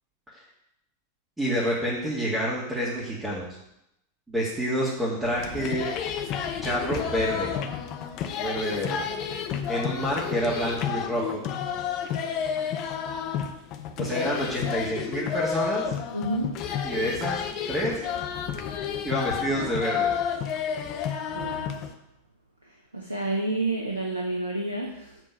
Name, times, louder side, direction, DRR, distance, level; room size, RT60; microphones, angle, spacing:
voice 1, 1.4-3.6 4.3-5.9 6.6-7.5 8.4-9.0 9.7-11.4 14.0-15.9 16.8-17.4 17.7-18.0 19.0-20.1, equal, 10° right, -8 dB, 2.5 m, -28 dB
sound 1, 5.2-21.9, left 8 dB, 40° left, 0.9 m, -31 dB
voice 2, 16.1-16.6 21.3-21.8 22.9-25.2, right 2 dB, 85° right, -1 dB, 1.1 m, -29 dB
7.8 x 4.4 x 7.0 m, 0.84 s
figure-of-eight pair, 90°, 0 cm